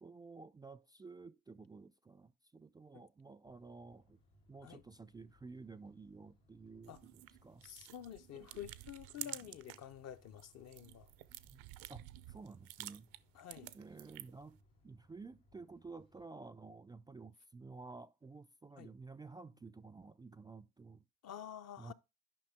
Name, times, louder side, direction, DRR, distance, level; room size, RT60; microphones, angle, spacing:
voice 1, 0.0-4.2 4.5-7.7 8.4-8.5 11.4-13.1 13.7-14.6 14.8-21.0 21.8-21.9, right 4 dB, 15° right, 0.3 m, -53 dB
sound 1, 3.4-16.3, equal, 85° left, 2.3 m, -69 dB
sound 2, 6.8-9.9 10.3-14.5, right 16 dB, 80° right, 0.5 m, -51 dB
voice 2, 7.6-11.1 13.3-13.8 18.8-18.9 21.2-21.9, left 10 dB, 55° left, 0.7 m, -49 dB
10.5 x 5.4 x 3.4 m
supercardioid pair, 75°, 31 cm